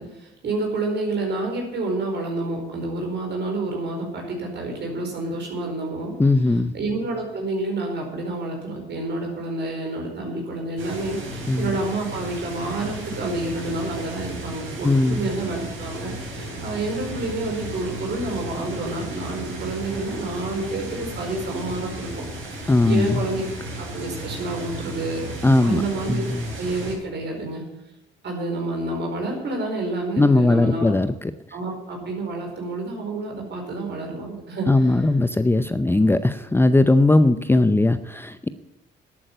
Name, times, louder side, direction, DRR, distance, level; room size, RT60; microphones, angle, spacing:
voice 1, 0.0-6.1 6.7-22.2 22.5-23.4 23.8-26.3 26.6-27.6 28.2-31.0 31.5-34.9, right 2 dB, 60° right, 1 dB, 4.7 m, -29 dB
voice 2, 6.2-6.7 11.5-11.8 14.8-15.3 22.7-23.2 25.4-25.8 26.1-26.5 30.2-31.3 34.7-38.5, left 2 dB, 10° left, 12 dB, 0.6 m, -19 dB
sound 1, 10.8-26.9, right 1 dB, 85° right, 5.2 m, -34 dB
12.0 x 8.6 x 9.0 m, 0.89 s
cardioid pair, 90°, 20 cm